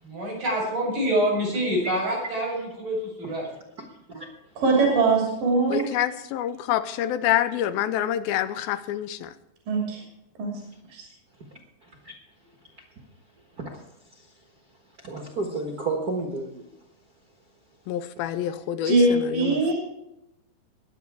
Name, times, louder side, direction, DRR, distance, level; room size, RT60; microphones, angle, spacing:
voice 1, 0.0-3.4, equal, 40° right, -3 dB, 8.4 m, -26 dB
voice 2, 4.6-5.8 9.7-10.0 10.4-10.5 10.9-11.0 18.8-19.7, right 3 dB, 60° right, -1 dB, 4.5 m, -21 dB
voice 3, 5.7-9.3 17.9-19.7, left 11 dB, 80° left, 13 dB, 2.4 m, -27 dB
voice 4, 15.0-16.6, right 3 dB, 80° right, 1 dB, 0.8 m, -31 dB
22.0 x 8.1 x 4.8 m, 0.87 s
omnidirectional pair, 4.4 m